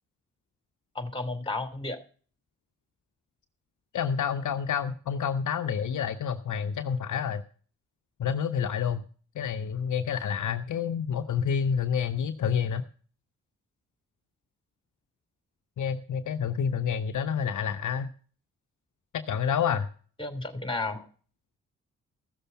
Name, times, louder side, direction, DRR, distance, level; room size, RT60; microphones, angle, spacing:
voice 1, 0.9-2.0 20.2-21.1, left 2 dB, 15° left, 8 dB, 3.1 m, -33 dB
voice 2, 3.9-7.4 8.2-9.0 9.3-12.8 15.8-18.1 19.1-19.9, left 7 dB, 60° left, 10 dB, 0.9 m, -28 dB
15.5 x 6.8 x 5.7 m, 0.42 s
hypercardioid pair, 45°, 34 cm